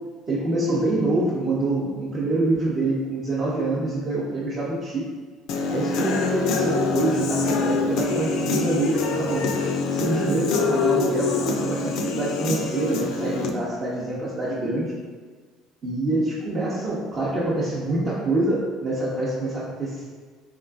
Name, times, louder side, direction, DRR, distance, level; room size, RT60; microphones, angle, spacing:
voice 1, 0.3-5.0 5.7-9.4 9.9-14.9 15.8-20.2, right 2 dB, 35° right, -8 dB, 0.7 m, -26 dB
Human voice / Guitar, 5.5-13.5, left 4 dB, 60° left, 0.3 m, -25 dB
4.6 x 2.3 x 2.3 m, 1.5 s
figure-of-eight pair, 60°, 0 cm